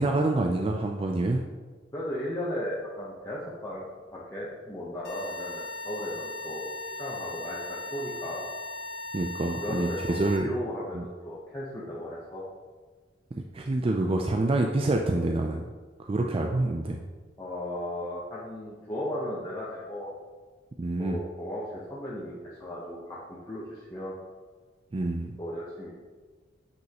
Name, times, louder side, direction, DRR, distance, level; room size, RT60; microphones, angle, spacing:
voice 1, 0.0-1.4 9.1-10.5 10.9-11.0 13.3-15.6 16.0-17.0 20.8-21.2 24.9-25.3, right 2 dB, 30° right, 2 dB, 0.4 m, -27 dB
voice 2, 1.9-8.4 9.6-12.4 17.4-20.1 21.0-24.2 25.4-25.9, left 1 dB, 15° left, -7 dB, 0.9 m, -36 dB
sound 1, 5.0-10.4, left 2 dB, 90° left, 1.3 m, -38 dB
7.8 x 6.2 x 2.9 m, 1.4 s
head